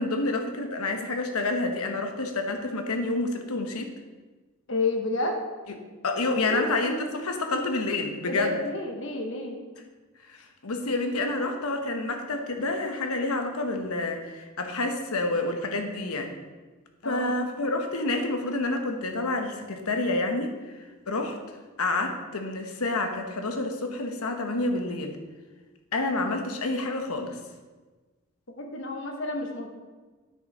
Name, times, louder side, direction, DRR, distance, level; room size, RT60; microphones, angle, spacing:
voice 1, 0.0-3.9 6.0-8.5 10.3-16.3 17.0-20.5 21.1-21.4 21.8-25.2 25.9-27.4, left 2 dB, 85° left, 5 dB, 1.1 m, -28 dB
voice 2, 4.7-5.4 6.3-6.8 8.3-9.6 17.0-17.3 28.6-29.7, left 2 dB, 60° left, 3 dB, 1.2 m, -30 dB
9.5 x 6.3 x 4.2 m, 1.3 s
head